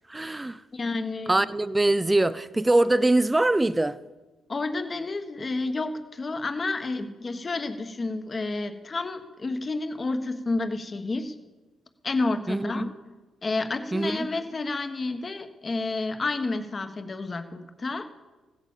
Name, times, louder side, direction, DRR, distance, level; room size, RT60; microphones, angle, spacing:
voice 1, 0.1-0.6 1.3-4.0 12.5-12.9 13.9-14.3, right 2 dB, 15° right, 0.5 m, -23 dB
voice 2, 0.7-1.3 4.5-11.3 12.0-13.1 13.4-18.1, left 3 dB, 30° left, 1.2 m, -30 dB
15.0 x 9.0 x 7.3 m
cardioid pair, 90°, 0 cm